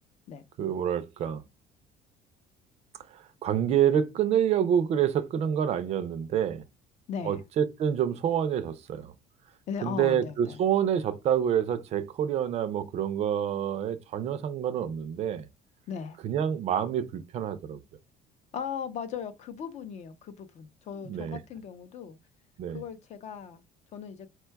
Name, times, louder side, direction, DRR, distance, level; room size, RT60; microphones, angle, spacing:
voice 1, 0.6-1.4 3.1-6.6 7.2-9.1 9.8-15.5 16.2-17.8 21.1-21.4 22.6-22.8, right 9 dB, 40° right, 0.4 m, -27 dB
voice 2, 7.1-7.4 9.7-10.6 15.9-16.2 18.5-22.2 22.7-23.6 23.9-24.3, left 7 dB, 45° left, 0.6 m, -38 dB
4.5 x 2.2 x 4.4 m
cardioid pair, 165°, 17 cm